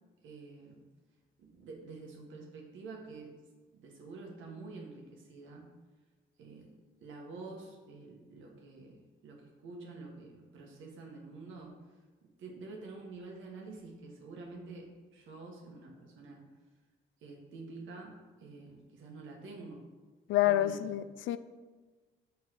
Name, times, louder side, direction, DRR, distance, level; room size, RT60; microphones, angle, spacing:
voice 1, 0.2-0.8 1.4-3.3 3.7-5.7 6.4-6.7 7.0-12.0 12.4-16.4 17.2-19.8 20.4-20.8, right 3 dB, 80° right, 0 dB, 1.5 m, -48 dB
voice 2, 20.3-21.4, left 13 dB, 80° left, 13 dB, 0.4 m, -28 dB
6.0 x 4.2 x 6.2 m, 1.4 s
cardioid pair, 90°, 20 cm